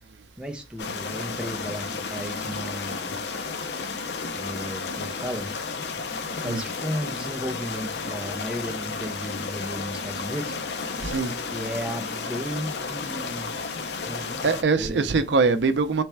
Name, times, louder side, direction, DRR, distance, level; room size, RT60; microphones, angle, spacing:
voice 1, 0.4-3.2 4.3-5.5 6.4-10.5 11.4-13.6 14.0-14.5 14.8-15.2, equal, 5° right, 0.6 m, -34 dB
sound 1, 0.8-14.6, left 4 dB, 75° left, 0.5 m, -32 dB
voice 2, 11.0-11.3 14.4-16.0, right 4 dB, 85° right, 0.5 m, -22 dB
3.3 x 3.1 x 4.5 m
head